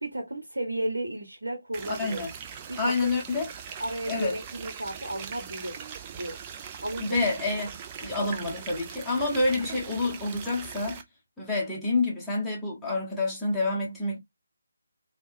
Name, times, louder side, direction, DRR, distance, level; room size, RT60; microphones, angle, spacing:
voice 1, 0.0-2.3 2.7-3.2 3.8-5.8 6.1-6.4 6.8-7.3 8.2-8.8, right 1 dB, 70° right, 1.0 m, -34 dB
sound 1, 1.7-11.0, right 7 dB, 20° right, 0.4 m, -41 dB
voice 2, 1.9-2.3 2.8-3.5 4.1-4.3 7.0-11.0 11.4-14.2, left 3 dB, ahead, 1.0 m, -28 dB
3.6 x 2.3 x 2.6 m
figure-of-eight pair, 150°, 0 cm